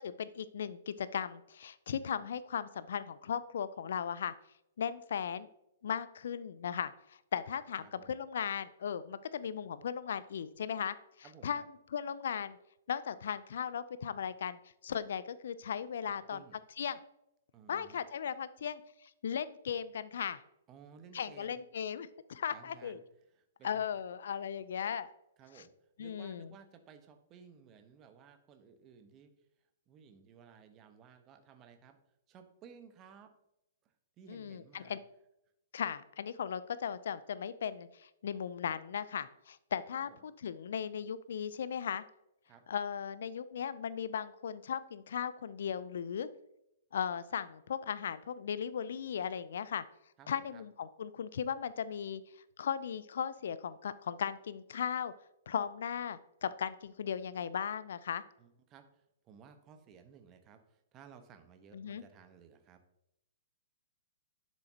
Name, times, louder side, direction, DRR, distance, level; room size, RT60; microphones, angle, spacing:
voice 1, 0.0-4.3 4.8-5.5 5.8-11.0 11.4-11.6 11.9-12.6 12.9-16.4 16.8-17.0 17.7-18.8 19.2-20.4 21.1-23.0 23.6-25.1 26.0-26.5 34.3-35.0 35.7-42.0 42.7-46.3 46.9-49.8 50.3-52.2 52.6-55.1 55.5-58.2 61.7-62.0, left 8 dB, 65° left, 16 dB, 0.5 m, -37 dB
voice 2, 7.8-8.2 11.2-11.6 16.0-16.6 17.5-18.0 20.7-21.6 22.5-23.0 23.3-23.9 25.4-25.7 26.0-29.3 29.9-32.0 32.3-33.3 33.8-35.0 39.9-40.2 42.5-42.6 50.2-50.6 58.4-62.8, right 7 dB, 30° right, 8 dB, 1.1 m, -57 dB
9.8 x 7.4 x 2.9 m, 0.82 s
figure-of-eight pair, 115°, 0 cm